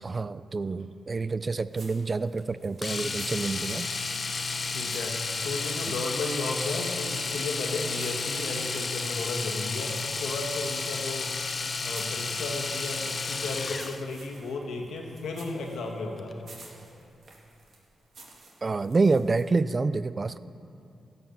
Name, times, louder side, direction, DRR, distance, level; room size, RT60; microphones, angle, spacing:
voice 1, 0.0-3.9 18.6-20.4, right 3 dB, 35° right, 15 dB, 0.3 m, -27 dB
sound 1, 1.7-9.1 9.4-19.7, right 3 dB, 60° right, 2.3 m, -54 dB
Domestic sounds home sounds, 2.8-14.1 16.2-16.3 16.6-16.7, left 4 dB, 40° left, 0.6 m, -32 dB
voice 2, 4.7-11.3 11.8-16.3, left 3 dB, 90° left, 1 dB, 1.5 m, -34 dB
16.5 x 5.7 x 6.9 m, 2.6 s
cardioid pair, 90°, 0 cm